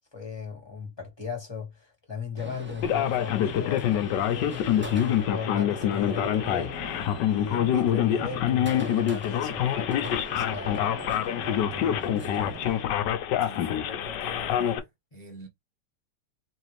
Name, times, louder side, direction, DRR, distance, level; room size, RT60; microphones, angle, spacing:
voice 1, 0.1-10.8 11.4-12.8, left 6 dB, 15° left, 1.6 m, -37 dB
sound 1, 2.4-12.8, right 2 dB, 10° right, 0.6 m, -42 dB
Male speech man speaking, 2.8-14.8, left 10 dB, 80° left, 1.3 m, -26 dB
voice 2, 13.4-14.9 15.1-15.5, right 1 dB, 50° left, 0.3 m, -44 dB
4.0 x 3.1 x 3.1 m
omnidirectional pair, 1.9 m